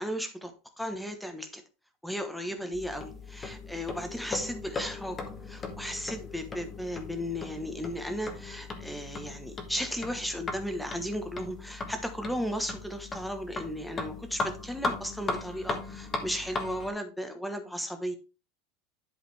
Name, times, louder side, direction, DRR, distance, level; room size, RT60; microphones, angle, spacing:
voice 1, 0.0-1.6 2.0-5.2 5.5-18.2, equal, ahead, 1.1 m, -35 dB
sound 1, 2.7-16.9, left 3 dB, 15° left, 1.4 m, -38 dB
11.0 x 5.0 x 3.3 m
supercardioid pair, 160°, 0 cm